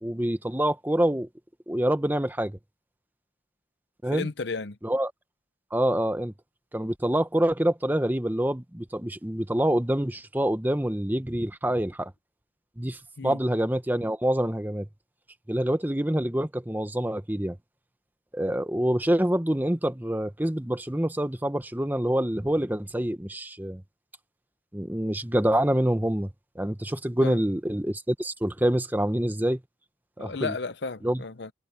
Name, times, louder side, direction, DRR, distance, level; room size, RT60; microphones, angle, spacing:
voice 1, 0.0-1.3 1.7-2.6 4.0-4.3 4.8-5.1 5.7-6.3 6.7-12.1 12.8-14.9 15.5-17.6 18.3-23.8 24.7-29.6 30.2-30.5 31.0-31.2, right 1 dB, 10° right, 1.0 m, -26 dB
voice 2, 4.1-4.8 13.2-13.4 27.2-27.4 30.2-31.5, left 4 dB, 70° left, 0.9 m, -33 dB
head